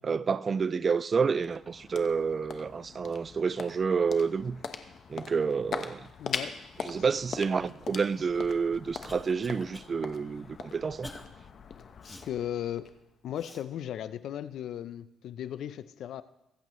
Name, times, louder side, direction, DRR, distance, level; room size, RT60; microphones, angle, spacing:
voice 1, 0.0-4.6 5.1-6.1 6.8-11.1, right 5 dB, 40° right, 0.3 m, -29 dB
sound 1, 1.0-13.4, left 6 dB, 55° left, 1.0 m, -42 dB
voice 2, 6.2-6.6 12.0-12.9 13.2-16.2, left 10 dB, 75° left, 0.6 m, -36 dB
Cough, 8.5-9.9 10.3-10.5 11.0-11.3 12.0-12.3 13.4-13.6, left 1 dB, 10° left, 1.1 m, -47 dB
23.5 x 8.2 x 3.1 m
cardioid pair, 90°, 0 cm